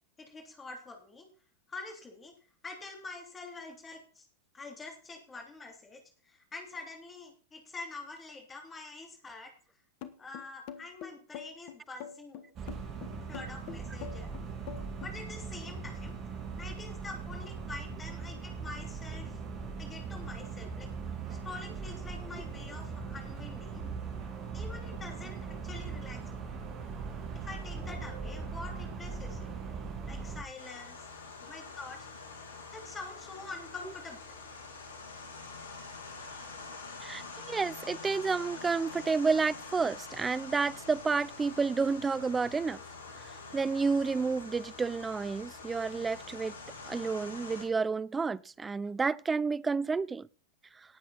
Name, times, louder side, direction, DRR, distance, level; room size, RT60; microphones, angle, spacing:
voice 1, 0.2-1.3 1.7-2.3 2.6-4.2 4.5-9.5 10.2-12.4 13.1-14.3 15.0-16.2 16.6-19.4 19.8-20.9 21.4-23.8 24.5-26.5 27.3-29.5 30.1-31.0 31.5-32.1 32.7-34.4, left 3 dB, 15° left, 3.4 m, -46 dB
sound 1, 10.0-15.2, left 9 dB, 45° left, 1.5 m, -44 dB
sound 2, 12.6-30.4, right 5 dB, 35° right, 3.1 m, -40 dB
sound 3, 30.6-47.7, left 4 dB, 65° left, 2.9 m, -46 dB
voice 2, 37.0-42.8 43.2-46.5 46.9-50.3, right 4 dB, 15° right, 0.6 m, -30 dB
18.5 x 8.2 x 4.3 m
figure-of-eight pair, 90°, 0 cm